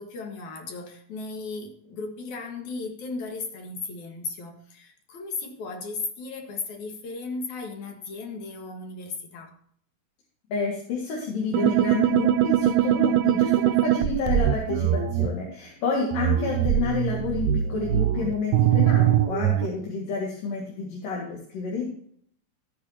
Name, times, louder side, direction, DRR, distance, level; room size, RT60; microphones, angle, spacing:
voice 1, 0.0-9.5, left 3 dB, 65° left, 3 dB, 3.0 m, -36 dB
voice 2, 10.5-21.9, left 4 dB, 90° left, -3 dB, 3.6 m, -29 dB
sound 1, 11.5-15.3 16.1-19.7, right 12 dB, 80° right, 1.6 m, -22 dB
15.0 x 8.8 x 2.9 m, 0.63 s
omnidirectional pair, 3.7 m